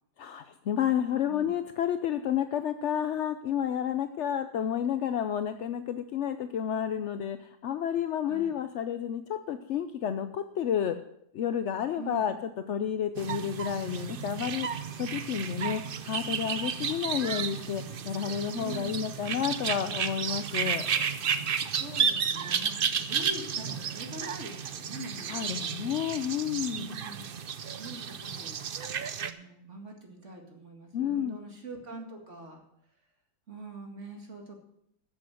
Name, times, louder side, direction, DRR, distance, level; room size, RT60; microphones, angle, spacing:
voice 1, 0.2-11.0 11.3-20.9 25.3-26.9 30.9-31.4, left 9 dB, 65° left, 9 dB, 0.7 m, -31 dB
voice 2, 12.0-12.3 18.5-19.1 21.7-25.7 26.7-27.2 27.7-28.6 29.2-32.6 33.5-34.6, right 2 dB, 45° right, 2 dB, 2.4 m, -44 dB
sound 1, 13.2-29.3, right 7 dB, 65° right, 0.5 m, -32 dB
14.0 x 7.4 x 6.3 m, 0.75 s
omnidirectional pair, 1.8 m